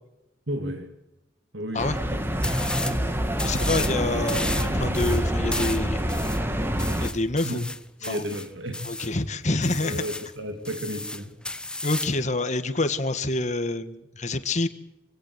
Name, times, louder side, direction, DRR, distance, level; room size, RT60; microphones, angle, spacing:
voice 1, 0.5-0.9 1.5-2.6 3.4-3.6 7.4-7.6 8.0-8.8 9.8-11.3, equal, 85° right, 6 dB, 2.6 m, -33 dB
sound 1, 1.8-7.1, equal, 15° right, 2.1 m, -26 dB
sound 2, 2.4-3.0 3.3-4.0 4.3-9.1 9.6-10.3 10.6-12.2, left 2 dB, 5° left, 0.9 m, -33 dB
voice 2, 3.4-6.0 7.0-7.6 8.1-8.2 8.8-10.0 11.8-14.7, left 2 dB, 40° left, 10 dB, 1.6 m, -27 dB
26.0 x 17.5 x 8.0 m, 0.92 s
head